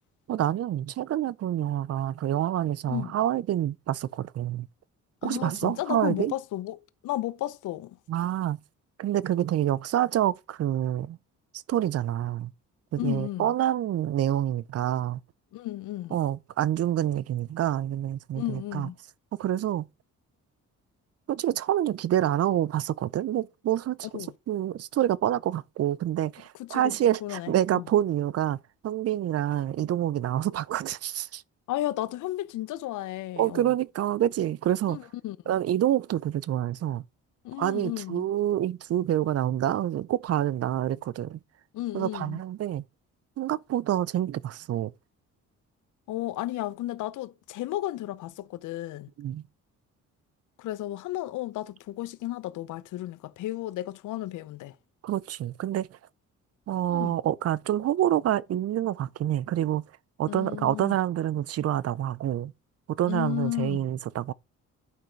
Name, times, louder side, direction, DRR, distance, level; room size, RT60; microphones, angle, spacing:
voice 1, 0.3-4.7 5.2-6.3 8.1-8.6 9.0-11.2 11.7-12.5 12.9-15.2 16.1-18.9 19.4-19.9 21.3-28.6 28.8-31.4 33.4-35.0 35.5-37.0 37.6-41.4 41.9-42.8 43.4-44.9 49.2-49.4 55.0-55.9 56.7-59.8 60.2-62.5 62.9-64.3, right 12 dB, 55° right, 0.5 m, -27 dB
voice 2, 5.2-8.0 13.0-13.5 15.5-16.2 18.3-19.0 24.1-24.3 26.6-27.8 31.7-33.7 34.9-35.4 37.4-38.2 41.7-42.4 46.1-49.1 50.6-54.7 56.9-57.2 60.2-60.9 63.1-63.8, left 15 dB, 80° left, 0.7 m, -33 dB
11.0 x 4.4 x 5.1 m
cardioid pair, 90°, 30 cm